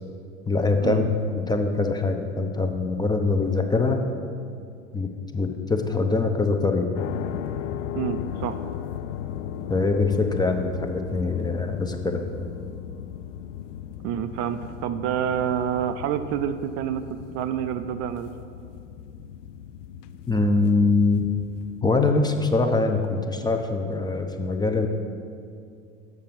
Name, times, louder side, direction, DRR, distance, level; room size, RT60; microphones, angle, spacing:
voice 1, 0.5-4.0 4.9-6.9 9.7-12.2 20.3-21.3 21.8-24.9, left 3 dB, 10° left, 4 dB, 0.5 m, -23 dB
sound 1, 6.9-21.8, left 10 dB, 70° left, 0.5 m, -36 dB
voice 2, 7.9-8.6 14.0-18.3, right 9 dB, 45° right, 9 dB, 0.4 m, -28 dB
7.2 x 6.5 x 5.8 m, 2.4 s
hypercardioid pair, 85°, 38 cm